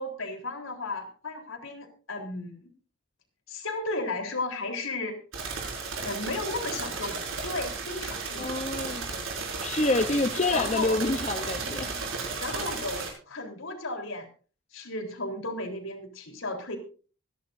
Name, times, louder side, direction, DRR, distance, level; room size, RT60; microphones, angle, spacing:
voice 1, 0.0-2.7 3.5-5.2 6.0-8.5 8.8-9.0 10.5-11.0 11.7-14.3 14.7-16.8, left 2 dB, 75° left, 3 dB, 3.9 m, -35 dB
sound 1, 5.3-13.1, right 4 dB, 75° right, 5.8 m, -34 dB
voice 2, 8.4-9.1 9.6-11.9, left 2 dB, 35° left, 6 dB, 0.8 m, -27 dB
25.5 x 11.0 x 2.7 m, 0.38 s
head